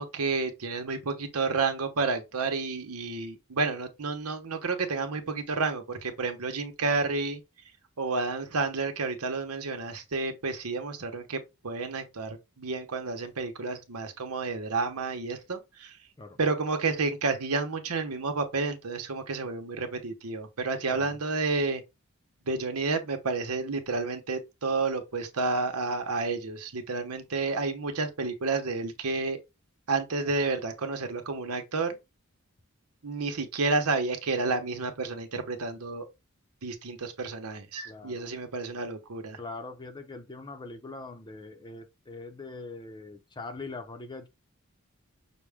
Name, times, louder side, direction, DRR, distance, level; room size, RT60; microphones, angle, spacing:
voice 1, 0.0-7.4 8.0-16.0 16.4-21.8 22.5-29.4 29.9-32.0 33.0-36.0 36.6-39.4, right 3 dB, 85° right, 0.9 m, -30 dB
voice 2, 37.9-38.3 39.4-44.3, left 3 dB, 20° left, 0.6 m, -42 dB
6.0 x 2.2 x 3.5 m
head